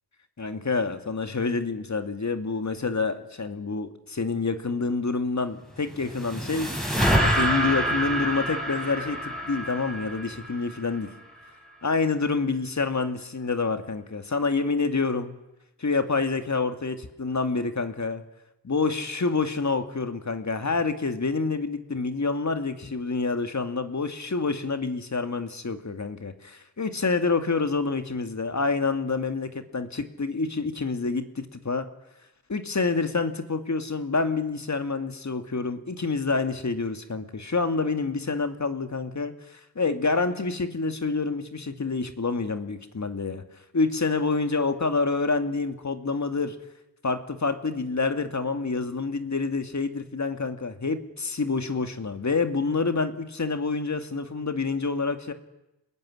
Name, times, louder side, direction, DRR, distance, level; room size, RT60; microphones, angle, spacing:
voice 1, 0.4-6.7 7.1-11.1 11.8-15.3 15.8-18.2 18.6-31.9 32.5-43.4 43.7-46.6 47.0-55.3, left 4 dB, 40° left, 8 dB, 2.3 m, -27 dB
sound 1, 5.7-11.1, right 1 dB, ahead, 6.2 m, -27 dB
26.5 x 20.5 x 9.8 m, 0.94 s
cardioid pair, 75°, 42 cm